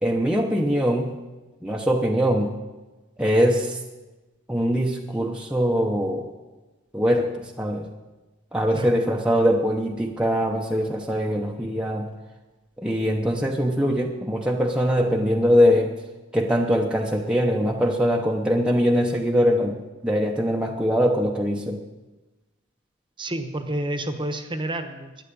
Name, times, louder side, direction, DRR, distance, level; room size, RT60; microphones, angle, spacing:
voice 1, 0.0-1.1 1.6-2.5 3.2-3.8 4.5-6.3 6.9-7.8 8.5-12.1 12.8-15.9 16.3-19.8 20.0-21.8, equal, 5° right, -1 dB, 0.9 m, -22 dB
voice 2, 23.2-25.2, right 1 dB, 25° right, 8 dB, 1.1 m, -29 dB
12.5 x 10.0 x 8.6 m, 1.2 s
head